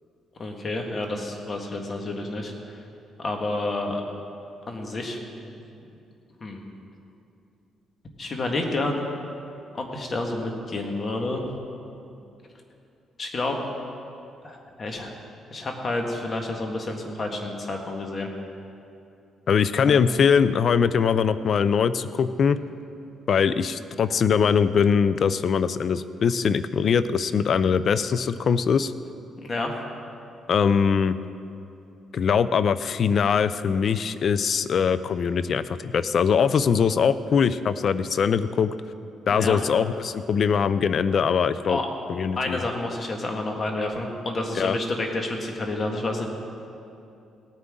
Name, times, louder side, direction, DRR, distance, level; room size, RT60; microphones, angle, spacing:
voice 1, 0.4-2.8 3.2-4.0 4.7-5.6 6.4-6.6 8.2-9.0 9.7-11.4 13.2-13.6 14.4-15.1 15.5-18.3 19.9-20.0 29.4-29.7 39.3-39.6 41.7-41.9 42.4-46.3, left 2 dB, 40° left, 2 dB, 1.8 m, -29 dB
voice 2, 19.5-22.6 23.3-28.9 30.5-31.2 32.1-38.7 39.3-41.8 42.1-42.6 44.5-44.8, left 6 dB, 55° left, 14 dB, 0.5 m, -22 dB
17.5 x 9.6 x 3.8 m, 2.7 s
cardioid pair, 90°, 0 cm